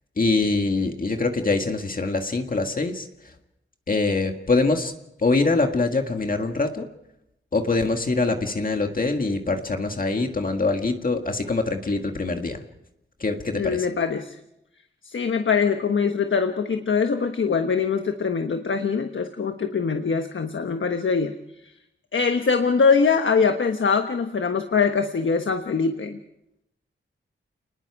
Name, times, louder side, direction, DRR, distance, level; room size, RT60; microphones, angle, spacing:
voice 1, 0.2-3.3 3.9-4.9 5.2-6.9 7.5-12.6 13.2-13.9, left 3 dB, 45° left, 4 dB, 1.9 m, -24 dB
voice 2, 13.6-14.4 15.0-21.3 22.1-26.2, left 5 dB, 70° left, 6 dB, 1.3 m, -23 dB
29.5 x 20.0 x 4.8 m, 0.85 s
wide cardioid pair, 110°, 21 cm